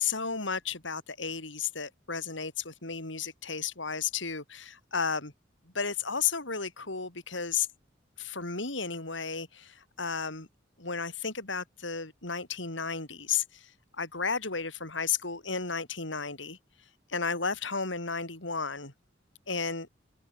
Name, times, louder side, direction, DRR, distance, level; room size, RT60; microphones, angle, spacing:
voice 1, 0.0-5.3 5.7-7.7 8.2-10.5 10.8-13.6 14.0-16.6 17.1-18.9 19.5-19.9, left 5 dB, 80° left, 5.1 m, -33 dB
head